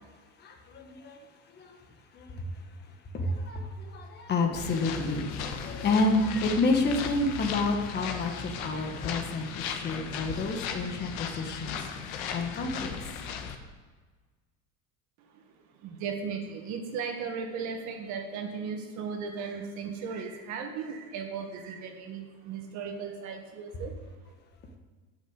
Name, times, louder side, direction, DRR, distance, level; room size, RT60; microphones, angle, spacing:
voice 1, 0.4-1.3 1.5-1.8 2.1-12.0 12.3-13.1, left 2 dB, 30° left, 3 dB, 1.4 m, -30 dB
sound 1, 4.5-13.6, left 6 dB, 90° left, 1.4 m, -37 dB
voice 2, 15.8-23.9, right 5 dB, 55° right, 4 dB, 1.9 m, -36 dB
11.5 x 6.5 x 8.1 m, 1.4 s
cardioid pair, 155°, 34 cm